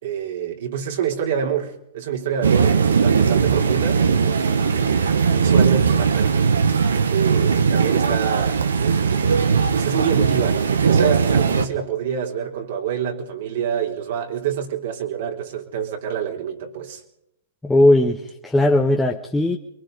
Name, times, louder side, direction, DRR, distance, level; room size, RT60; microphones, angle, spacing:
voice 1, 0.0-4.0 4.4-6.5 7.1-17.0, right 8 dB, 60° right, 3.7 m, -27 dB
sound 1, 2.4-11.7, right 6 dB, 80° right, 1.5 m, -19 dB
voice 2, 17.6-19.6, left 1 dB, 5° left, 1.4 m, -18 dB
29.0 x 23.0 x 4.1 m
hypercardioid pair, 115°, 0 cm